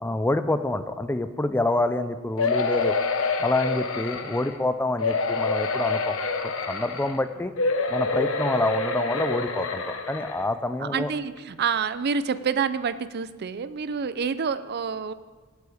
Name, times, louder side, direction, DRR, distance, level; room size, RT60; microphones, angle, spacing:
voice 1, 0.0-2.9 3.4-6.2 6.4-7.5 7.9-11.1, left 2 dB, 10° left, 11 dB, 0.5 m, -27 dB
sound 1, 2.4-4.5 5.0-7.2 7.6-10.4 11.0-11.1 11.4-11.5, left 3 dB, 80° left, 1.1 m, -27 dB
voice 2, 10.8-15.1, right 6 dB, 50° right, 14 dB, 0.5 m, -28 dB
17.5 x 8.4 x 5.0 m, 1.4 s
head